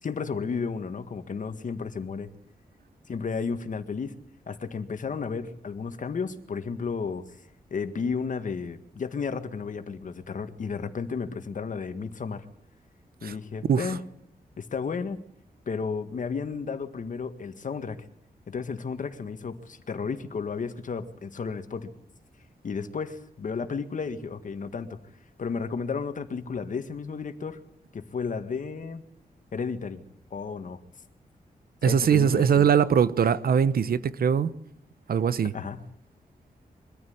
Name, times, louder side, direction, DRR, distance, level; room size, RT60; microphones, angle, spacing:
voice 1, 0.0-2.3 3.1-4.1 4.5-7.3 7.7-12.4 13.2-14.0 14.6-15.2 15.7-18.1 18.5-21.9 22.6-25.0 25.4-27.6 27.9-29.0 29.5-30.0 30.3-30.8 31.8-32.7 35.5-35.8, left 5 dB, 55° left, 1.9 m, -33 dB
voice 2, 31.8-34.5 35.1-35.5, right 7 dB, 75° right, 1.0 m, -22 dB
24.0 x 14.0 x 9.5 m
wide cardioid pair, 150°, 16 cm